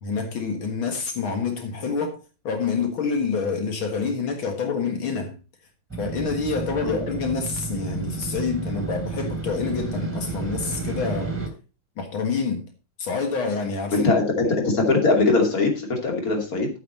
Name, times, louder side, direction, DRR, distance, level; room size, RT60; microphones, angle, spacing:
voice 1, 0.0-5.4 6.0-11.3 12.0-12.7 13.0-14.1 14.4-14.5, left 5 dB, 80° left, 2.5 m, -27 dB
Motorcycle, 5.9-11.5, right 3 dB, 5° right, 2.7 m, -31 dB
voice 2, 13.9-16.7, left 3 dB, 45° left, 3.0 m, -21 dB
10.0 x 9.1 x 4.2 m
omnidirectional pair, 2.2 m